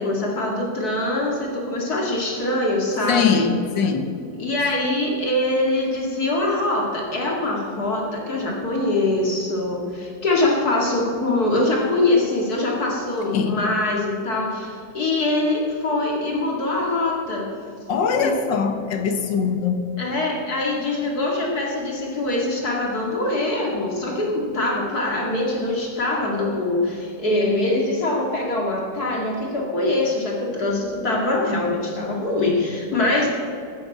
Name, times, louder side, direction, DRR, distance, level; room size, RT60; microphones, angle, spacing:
voice 1, 0.0-3.4 4.4-17.5 18.2-18.3 20.0-33.3, left 2 dB, 55° left, -2 dB, 2.6 m, -23 dB
voice 2, 3.1-4.1 13.3-13.5 17.9-19.8, left 6 dB, 85° left, 7 dB, 1.9 m, -21 dB
11.5 x 9.5 x 8.5 m, 2.6 s
omnidirectional pair, 1.9 m